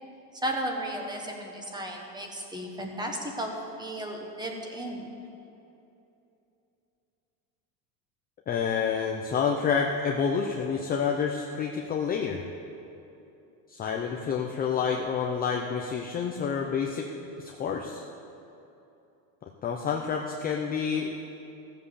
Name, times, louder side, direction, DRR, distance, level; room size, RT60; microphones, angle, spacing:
voice 1, 0.4-3.5 3.8-5.1, right 1 dB, 10° right, 1 dB, 1.3 m, -34 dB
voice 2, 8.5-12.4 13.7-17.1 17.4-18.0 19.4-21.1, left 6 dB, 20° left, 0 dB, 0.6 m, -28 dB
15.0 x 7.5 x 6.7 m, 2.8 s
cardioid pair, 150°, 44 cm